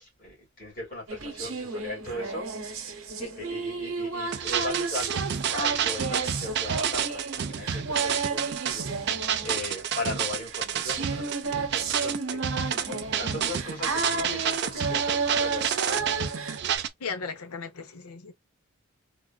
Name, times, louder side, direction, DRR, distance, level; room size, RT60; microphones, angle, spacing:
voice 1, 0.0-2.5 3.3-8.9 9.4-12.4 12.7-16.3, left 1 dB, 40° left, 2.1 m, -38 dB
sound 1, 1.1-16.8, right 4 dB, 70° right, 0.9 m, -33 dB
sound 2, 4.3-16.9, right 8 dB, 50° right, 0.4 m, -30 dB
voice 2, 17.0-18.3, left 5 dB, 85° left, 0.7 m, -36 dB
3.6 x 2.4 x 2.3 m
head